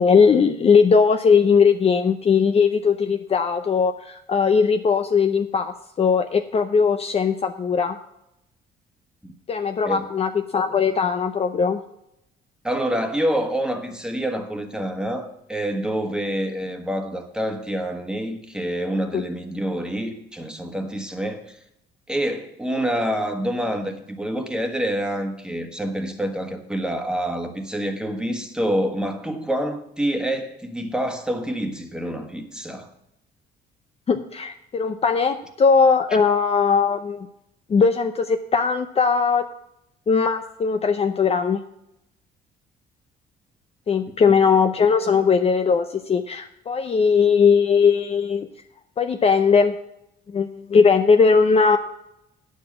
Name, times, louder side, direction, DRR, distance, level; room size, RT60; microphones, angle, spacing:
voice 1, 0.0-8.0 9.5-11.8 19.1-19.2 34.1-37.3 37.7-39.5 40.1-41.6 43.9-48.5 49.0-49.7 50.3-51.8, left 5 dB, 35° left, 7 dB, 0.6 m, -19 dB
voice 2, 12.6-21.6 22.1-32.9 44.2-44.3, equal, 5° right, 4 dB, 1.4 m, -27 dB
9.6 x 7.3 x 6.0 m, 0.81 s
cardioid pair, 110°, 18 cm